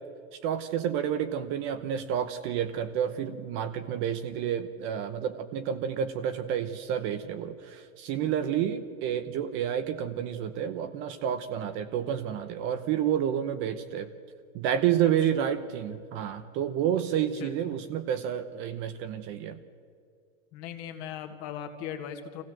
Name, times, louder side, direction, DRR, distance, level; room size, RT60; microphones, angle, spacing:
voice 1, 0.4-14.1 14.5-19.6, right 9 dB, 30° right, 9 dB, 0.9 m, -30 dB
voice 2, 20.5-22.4, left 9 dB, 35° left, 5 dB, 2.0 m, -38 dB
25.0 x 16.0 x 7.6 m, 2.2 s
hypercardioid pair, 145°, 40 cm